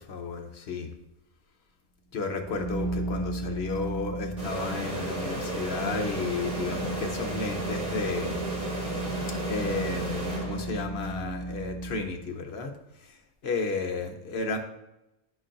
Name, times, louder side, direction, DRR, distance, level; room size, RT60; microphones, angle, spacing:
voice 1, 0.1-0.9 2.1-8.4 9.5-12.7 13.4-14.6, left 4 dB, 60° left, 4 dB, 1.0 m, -33 dB
sound 1, 2.2-12.1, right 2 dB, 40° left, 2.1 m, -35 dB
sound 2, 4.4-11.0, right 2 dB, 45° right, 2.2 m, -33 dB
11.0 x 4.2 x 2.5 m, 0.91 s
omnidirectional pair, 1.3 m